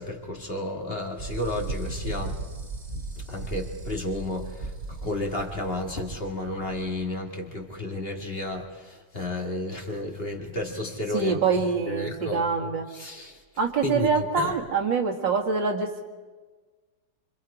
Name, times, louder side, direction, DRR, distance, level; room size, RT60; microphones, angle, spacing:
voice 1, 0.0-2.3 3.3-13.4 13.8-14.6, left 2 dB, 30° left, 1 dB, 2.2 m, -32 dB
sound 1, 1.2-7.0, right 3 dB, 45° right, 2.7 m, -36 dB
voice 2, 11.1-12.8 13.6-16.0, right 5 dB, 85° right, 2 dB, 2.8 m, -25 dB
26.0 x 26.0 x 5.0 m, 1.4 s
omnidirectional pair, 2.0 m